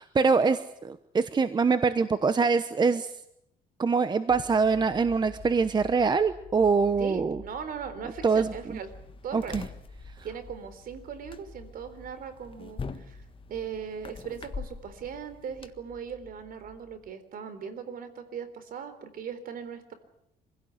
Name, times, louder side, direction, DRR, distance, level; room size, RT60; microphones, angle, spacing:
voice 1, 0.0-3.1 3.8-7.4 8.2-8.5 9.3-9.6, right 5 dB, 25° right, 12 dB, 1.0 m, -24 dB
sound 1, 4.3-17.1, left 2 dB, 15° left, 2.9 m, -50 dB
voice 2, 7.0-8.9 9.2-9.6 10.2-19.9, right 7 dB, 60° right, 12 dB, 4.0 m, -39 dB
sound 2, 8.4-15.7, left 5 dB, 30° left, 1.6 m, -44 dB
26.0 x 16.5 x 9.6 m, 0.78 s
cardioid pair, 110°, 17 cm